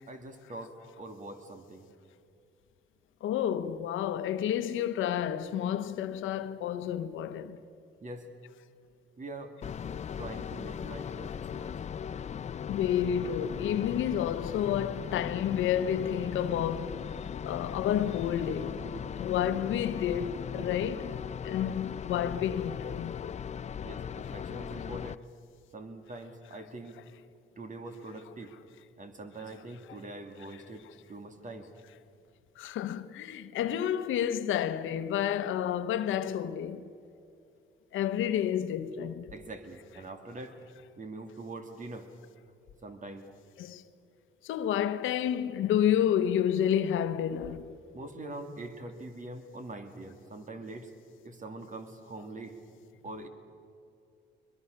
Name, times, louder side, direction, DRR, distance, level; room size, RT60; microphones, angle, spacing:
voice 1, 0.1-1.9 8.0-8.3 9.2-9.6 10.2-11.8 23.8-25.2 25.7-27.0 27.6-28.5 29.0-31.7 39.3-40.6 41.0-42.1 42.8-43.3 47.9-50.9 51.2-52.6 53.0-53.3, right 2 dB, 40° right, 2.7 m, -43 dB
voice 2, 3.2-7.6 12.7-17.0 17.5-18.8 19.1-21.2 21.4-23.4 32.6-36.9 37.9-39.3 43.6-43.8 44.4-47.7, left 10 dB, 85° left, 1.0 m, -30 dB
sound 1, 9.6-25.1, left 7 dB, 35° left, 0.4 m, -38 dB
22.5 x 22.0 x 6.7 m
cardioid pair, 90°, 20 cm